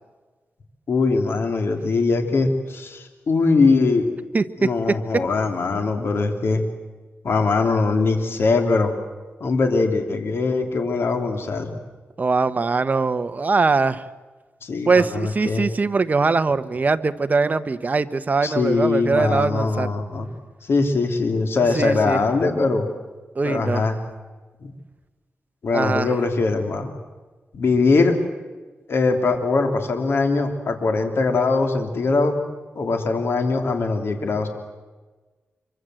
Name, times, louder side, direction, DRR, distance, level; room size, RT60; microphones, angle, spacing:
voice 1, 0.9-4.1 4.6-6.6 7.2-8.9 9.4-11.8 14.6-15.7 18.4-20.3 20.6-22.9 23.4-24.0 24.6-24.7 25.6-26.9 27.5-28.1 28.9-32.4 32.7-34.5, left 3 dB, 65° left, 5 dB, 3.1 m, -21 dB
voice 2, 12.2-14.0 14.9-19.9 21.7-22.2 23.3-23.9 25.7-26.1, right 4 dB, 40° right, 11 dB, 1.1 m, -21 dB
25.0 x 24.0 x 7.8 m, 1.3 s
wide cardioid pair, 90°, 4 cm